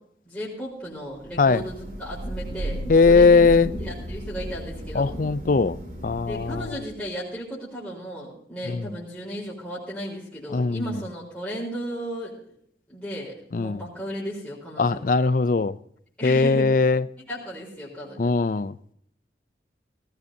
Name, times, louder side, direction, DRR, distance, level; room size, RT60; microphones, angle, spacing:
voice 1, 0.2-2.8 3.1-3.4 3.8-5.1 6.3-12.3 12.9-15.0 16.2-16.9 17.3-18.3, equal, 5° left, 4.1 m, -35 dB
Thunder / Rain, 1.2-7.0, right 1 dB, 45° right, 2.6 m, -34 dB
voice 2, 2.9-3.7 4.9-5.8 6.0-6.7 8.7-8.8 10.5-10.9 13.5-13.8 14.8-15.8 16.2-17.1 18.2-18.7, left 4 dB, 50° left, 0.4 m, -20 dB
18.5 x 15.0 x 2.8 m
head